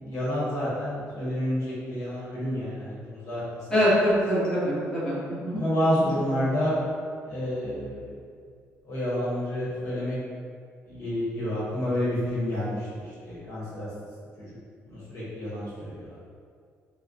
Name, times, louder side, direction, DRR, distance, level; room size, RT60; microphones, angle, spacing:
voice 1, 0.0-3.6 5.5-6.7 7.3-8.1 8.9-10.2 10.9-13.9 14.9-16.2, left 1 dB, 65° left, -8 dB, 1.1 m, -29 dB
voice 2, 3.7-6.1, equal, 15° left, -10 dB, 1.1 m, -25 dB
2.3 x 2.1 x 3.9 m, 2.2 s
cardioid pair, 105°, 5 cm